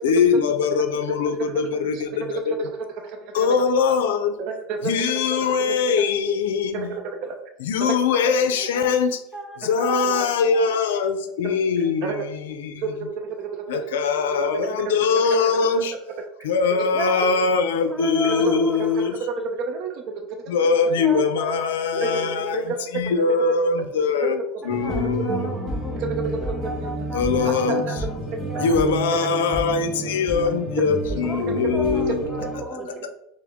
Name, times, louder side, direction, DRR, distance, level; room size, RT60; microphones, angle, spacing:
voice 1, 0.0-2.7 3.3-4.3 4.8-7.0 7.6-9.2 9.6-12.8 13.7-15.9 16.4-19.2 20.5-25.7 27.1-27.8 28.6-32.2 32.9-33.2, left 5 dB, 90° left, 9 dB, 0.4 m, -22 dB
voice 2, 1.7-2.0 2.4-2.9 3.2-3.5 3.9-4.0 4.5-4.9 6.7-7.3 8.3-8.4 9.6-9.7 10.0-10.2 12.0-12.2 12.8-12.9 13.1-13.6 15.4-15.5 15.8-15.9 16.2-16.3 18.4-18.9 19.2-20.3 21.0-21.2 22.0-22.1 22.4-22.8 24.7-24.8 25.3-25.4 25.9-27.0 27.4-27.9 28.7-28.8 29.2-29.3 31.1-31.4 32.1-32.3 32.7-32.9, right 4 dB, 60° right, 4 dB, 0.5 m, -30 dB
voice 3, 8.6-9.0 9.3-10.6 10.9-11.1 11.8-11.9 16.9-17.3 17.9-19.1 20.7-22.4 24.6-28.7 31.2-33.2, right 1 dB, 10° right, 2 dB, 0.7 m, -35 dB
sound 1, 24.7-32.6, right 1 dB, 15° left, 1.4 m, -30 dB
4.8 x 2.0 x 3.5 m, 0.78 s
supercardioid pair, 105°, 0 cm